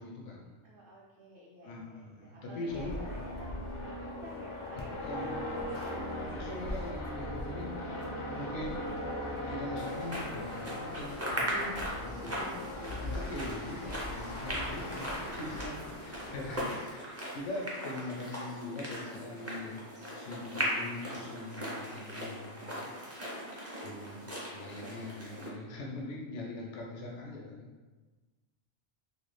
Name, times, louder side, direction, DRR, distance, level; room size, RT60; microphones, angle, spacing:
voice 1, 0.0-0.5 1.6-3.0 5.1-5.8 6.3-7.7 8.4-8.8 9.5-12.6 13.0-19.9 20.2-22.9 23.8-27.7, left 2 dB, 85° left, -2 dB, 1.0 m, -42 dB
voice 2, 0.6-3.5 3.8-5.3 5.6-6.7 18.5-19.6, right 1 dB, 55° right, -7 dB, 0.8 m, -51 dB
sound 1, 2.7-16.6, left 1 dB, 55° left, 0.3 m, -39 dB
sound 2, 9.8-25.5, equal, 20° right, 0.4 m, -39 dB
3.3 x 2.1 x 3.2 m, 1.3 s
omnidirectional pair, 1.2 m